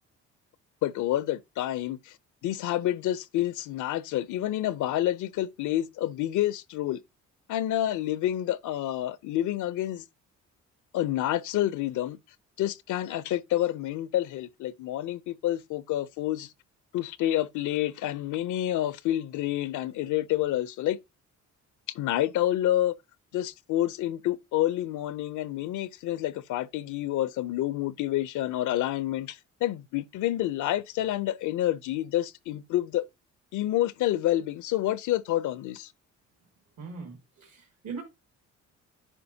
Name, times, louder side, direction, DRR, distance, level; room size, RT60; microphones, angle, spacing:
voice 1, 0.8-2.1 2.4-7.0 7.5-10.0 10.9-12.2 12.6-16.5 16.9-21.0 21.9-23.0 23.3-33.0 33.5-35.9, left 13 dB, 80° left, 0.6 m, -28 dB
voice 2, 36.8-38.0, right 5 dB, 70° right, 2.1 m, -40 dB
10.0 x 5.2 x 2.7 m
cardioid pair, 90°, 30 cm